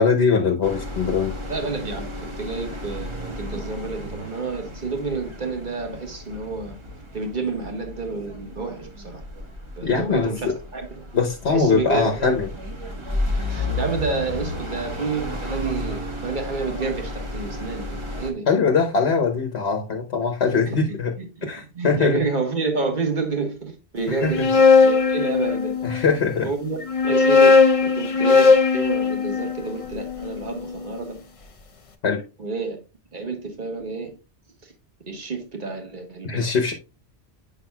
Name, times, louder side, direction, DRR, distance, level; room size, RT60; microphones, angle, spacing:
voice 1, 0.0-1.3 9.8-10.5 11.1-12.5 18.5-21.1 21.4-22.2 24.1-24.5 25.8-26.5 32.0-32.2 36.2-36.7, left 5 dB, 70° left, 1.2 m, -21 dB
sound 1, 0.6-18.3, left 1 dB, 30° right, 1.2 m, -33 dB
voice 2, 1.5-6.8 7.1-9.2 9.8-11.0 11.5-12.4 13.5-18.5 20.7-21.5 21.7-25.8 26.4-26.8 27.0-31.2 32.4-32.8 33.1-34.1 34.6-34.7 35.1-36.4, right 4 dB, 45° right, 1.5 m, -29 dB
sound 2, 24.1-26.0 26.8-31.0, left 4 dB, 35° left, 0.7 m, -18 dB
7.9 x 5.9 x 2.3 m
omnidirectional pair, 1.1 m